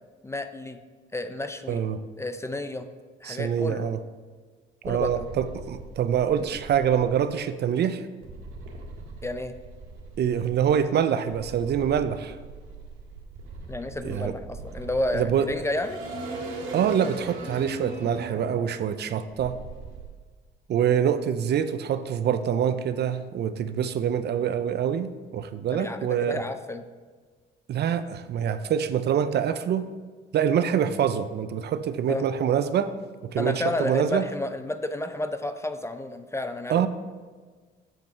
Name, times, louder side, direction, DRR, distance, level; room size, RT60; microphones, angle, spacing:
voice 1, 0.2-0.8 1.1-1.8 2.2-2.9 3.2-3.9 4.9-5.3 9.2-9.5 13.7-16.0 25.7-26.8 32.1-32.2 33.4-36.9, left 1 dB, 15° left, 9 dB, 0.5 m, -31 dB
voice 2, 1.7-2.0 3.2-4.0 4.8-8.0 10.2-12.4 14.0-14.3 15.1-15.5 16.7-19.6 20.7-26.4 27.7-29.9 30.3-32.9 33.3-34.2 36.7-36.9, right 8 dB, 55° right, 12 dB, 0.5 m, -25 dB
sound 1, 4.8-7.1 8.2-10.8 11.3-20.1, right 3 dB, 80° right, 1.8 m, -40 dB
7.5 x 5.4 x 4.5 m, 1.5 s
cardioid pair, 90°, 20 cm